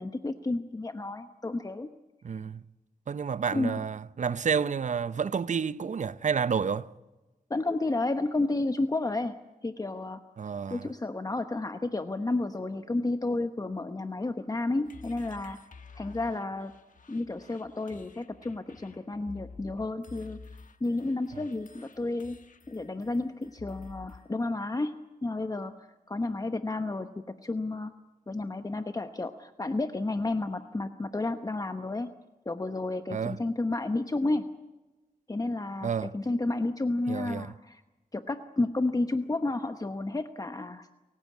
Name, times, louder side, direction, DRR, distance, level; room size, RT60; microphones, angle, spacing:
voice 1, 0.0-1.9 3.5-3.8 7.5-9.4 9.6-10.2 10.7-15.6 16.0-16.7 17.1-20.4 20.8-22.4 22.7-24.9 25.2-27.9 28.3-32.1 32.5-34.4 35.3-37.8 38.1-40.9, left 2 dB, 25° left, 1.0 m, -31 dB
voice 2, 2.2-2.6 3.1-6.9 10.4-10.9 33.1-33.4 35.8-36.1 37.1-37.5, right 6 dB, 55° right, 0.8 m, -30 dB
sound 1, 14.8-24.3, left 4 dB, 60° left, 1.3 m, -51 dB
29.5 x 15.5 x 8.5 m
wide cardioid pair, 90°, 15 cm